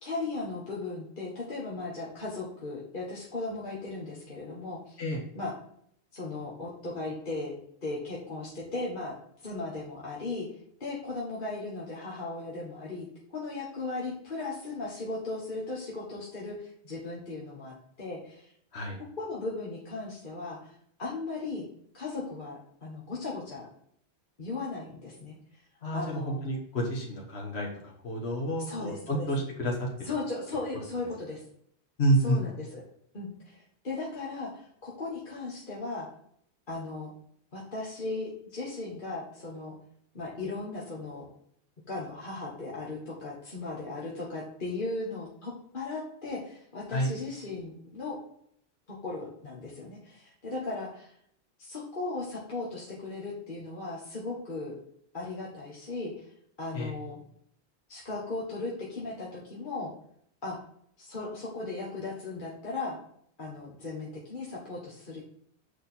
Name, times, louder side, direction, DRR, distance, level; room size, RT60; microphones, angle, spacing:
voice 1, 0.0-5.0 5.4-5.5 6.1-7.6 7.8-9.2 9.4-10.5 10.8-13.1 13.3-18.5 19.2-20.7 21.0-21.6 21.9-23.7 24.4-25.4 25.9-26.4 28.7-29.3 30.0-31.4 32.2-32.8 33.1-36.1 36.7-37.1 37.5-39.7 40.1-41.3 41.9-48.2 48.9-51.1 51.6-54.7 55.1-56.3 56.6-57.2 57.9-59.9 60.4-60.6 61.0-63.0 63.4-65.2, left 3 dB, 50° left, -5 dB, 1.7 m, -37 dB
voice 2, 25.8-30.1 32.0-32.4 46.9-47.1 56.7-56.9, right 1 dB, 70° left, -1 dB, 1.8 m, -29 dB
6.6 x 5.1 x 4.4 m, 0.68 s
omnidirectional pair, 1.1 m